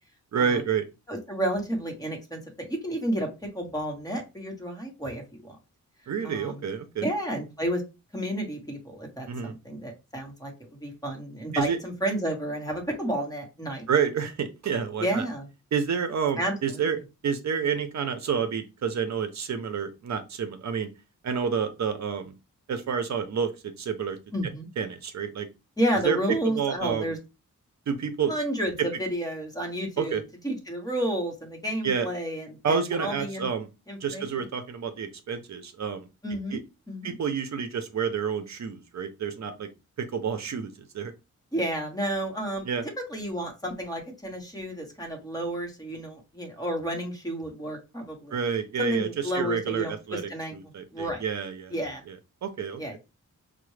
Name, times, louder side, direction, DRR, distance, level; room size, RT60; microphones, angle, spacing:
voice 1, 0.3-0.8 6.1-7.0 9.3-9.5 11.5-11.8 13.9-15.3 15.7-20.9 21.2-22.3 22.7-24.2 24.8-25.5 26.0-27.1 27.9-28.3 28.8-28.9 30.0-30.2 31.8-32.1 32.6-33.7 34.0-36.1 36.5-36.6 37.0-39.7 40.0-41.1 42.6-42.8 48.3-51.7 52.4-52.8, right 6 dB, 65° right, 8 dB, 0.6 m, -29 dB
voice 2, 1.1-3.3 3.5-5.6 6.2-6.6 7.0-7.8 8.1-10.5 10.8-13.8 15.0-15.5 16.4-16.8 24.3-24.7 25.8-27.2 28.3-33.5 33.9-34.5 36.2-36.6 36.9-37.1 41.5-42.6 43.1-48.4 48.8-50.5 50.9-51.2 51.7-52.0 52.8-53.0, right 1 dB, 10° left, 1 dB, 1.0 m, -31 dB
5.8 x 2.1 x 3.1 m, 0.27 s
wide cardioid pair, 175°, 30 cm